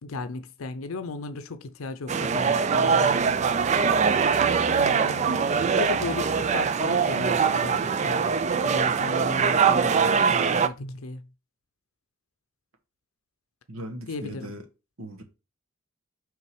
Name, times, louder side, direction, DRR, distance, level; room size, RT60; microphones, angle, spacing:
voice 1, 0.0-3.5 4.6-11.3 14.1-14.5, left 3 dB, 80° left, 0.6 m, -36 dB
sound 1, 2.1-10.7, right 6 dB, 35° right, 0.3 m, -22 dB
voice 2, 13.7-14.6 15.0-15.2, right 1 dB, 80° right, 1.2 m, -38 dB
5.8 x 3.7 x 4.7 m
head